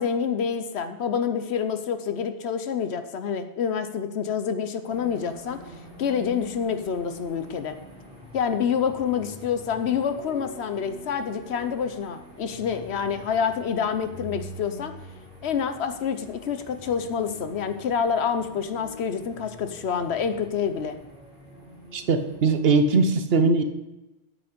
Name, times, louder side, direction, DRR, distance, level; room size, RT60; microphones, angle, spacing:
voice 1, 0.0-5.6 6.0-7.8 8.3-15.0 15.4-21.0, left 7 dB, 70° left, 9 dB, 1.0 m, -27 dB
sound 1, 4.8-23.0, equal, 5° right, 4.1 m, -45 dB
voice 2, 21.9-23.6, right 3 dB, 60° right, 8 dB, 1.0 m, -20 dB
8.5 x 8.3 x 5.1 m, 1.0 s
omnidirectional pair, 1.2 m